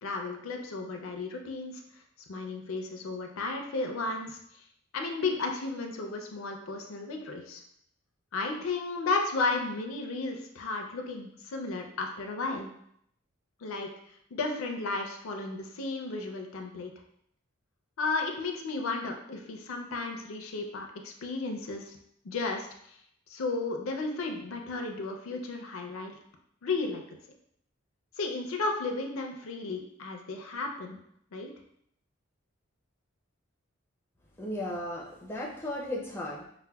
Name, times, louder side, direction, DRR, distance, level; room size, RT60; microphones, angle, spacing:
voice 1, 0.0-1.8 2.3-4.4 4.9-7.6 8.3-12.7 13.6-13.9 14.3-16.9 18.0-22.0 22.2-22.7 23.3-26.1 26.6-27.0 28.2-31.0 31.3-31.5, left 3 dB, 80° left, 3 dB, 0.5 m, -33 dB
voice 2, 34.4-36.5, left 1 dB, 10° left, -3 dB, 0.4 m, -35 dB
4.2 x 2.1 x 2.2 m, 0.71 s
head